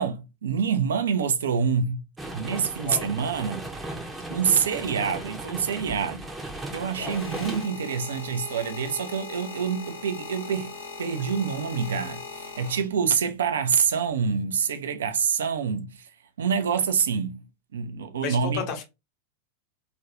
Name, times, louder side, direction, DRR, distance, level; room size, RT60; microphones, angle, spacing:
voice 1, 0.0-2.0 2.3-3.7 4.3-6.2 6.7-10.7 11.0-16.1 16.4-17.4 17.7-18.7, right 6 dB, 65° right, 0.4 m, -26 dB
sound 1, 2.2-7.7, right 1 dB, 10° right, 0.6 m, -36 dB
sound 2, 6.4-13.3 14.1-14.4, left 4 dB, 75° left, 0.8 m, -40 dB
voice 2, 18.2-18.8, left 7 dB, 40° left, 0.7 m, -32 dB
2.4 x 2.2 x 3.0 m
figure-of-eight pair, 90°, 0 cm